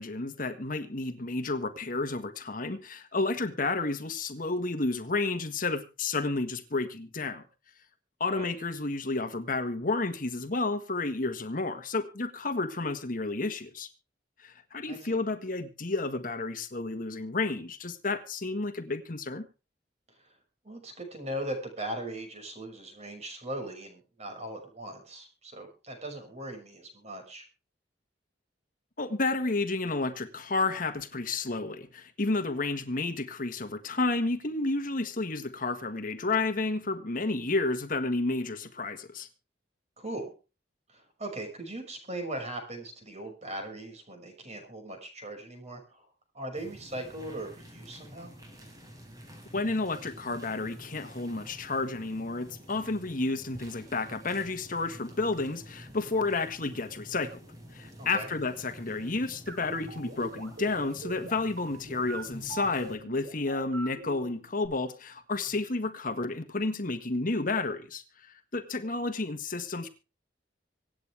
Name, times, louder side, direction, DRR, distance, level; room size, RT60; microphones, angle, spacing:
voice 1, 0.0-7.4 8.2-13.9 14.4-19.5 29.0-39.3 49.5-57.4 57.7-69.9, left 3 dB, 50° left, 1.5 m, -31 dB
voice 2, 14.9-15.2 20.6-27.4 40.0-40.3 40.9-46.1 46.3-48.3 58.0-58.3, right 1 dB, 40° right, 6.0 m, -39 dB
sound 1, 46.5-63.0, equal, 20° right, 4.6 m, -49 dB
sound 2, 59.5-64.7, right 3 dB, 80° right, 6.5 m, -42 dB
25.0 x 8.9 x 3.4 m
head